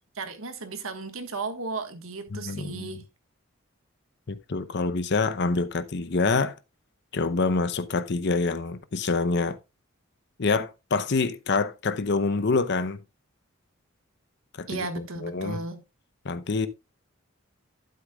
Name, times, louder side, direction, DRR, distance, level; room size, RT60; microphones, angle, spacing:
voice 1, 0.1-3.0 14.7-15.8, right 3 dB, 85° right, 1.6 m, -35 dB
voice 2, 2.3-3.0 4.3-6.6 7.1-9.6 10.4-13.0 14.6-15.6 16.2-16.7, left 3 dB, 55° left, 0.8 m, -26 dB
11.5 x 9.5 x 2.4 m
head